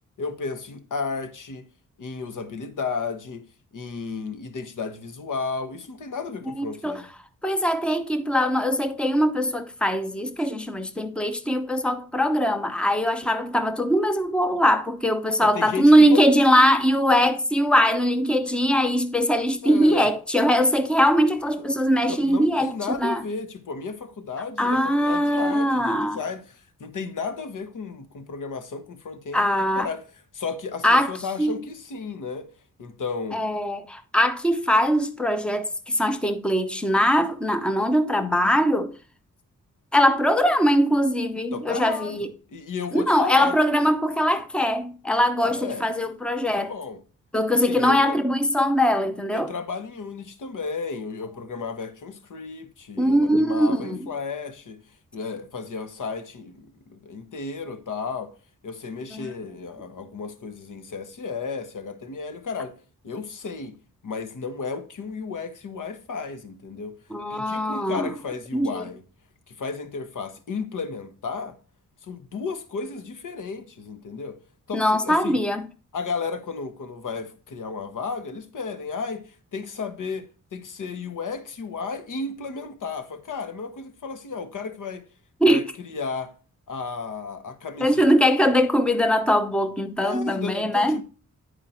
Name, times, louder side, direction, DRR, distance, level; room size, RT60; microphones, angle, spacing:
voice 1, 0.2-1.6 2.0-3.4 3.7-7.1 15.3-16.2 19.6-20.1 22.1-30.0 30.3-32.5 32.8-33.4 41.4-43.6 45.4-45.9 46.6-47.0 47.5-48.2 49.3-54.8 55.1-58.3 58.6-62.8 63.0-63.7 64.0-67.0 67.3-69.0 69.5-71.6 72.0-74.4 74.7-75.4 75.9-80.2 80.5-85.1 85.4-86.3 86.7-88.1 90.0-91.0, left 4 dB, 85° left, 1.3 m, -33 dB
voice 2, 6.6-7.0 7.4-23.2 24.6-26.2 29.3-29.9 30.8-31.1 31.4-31.5 33.3-38.9 39.9-42.3 42.9-46.7 47.3-49.5 53.0-54.0 59.1-59.3 67.1-68.1 68.5-68.8 74.7-75.6 85.4-85.6 87.8-91.0, equal, 5° left, 0.8 m, -21 dB
10.0 x 4.9 x 4.3 m
wide cardioid pair, 125°, 31 cm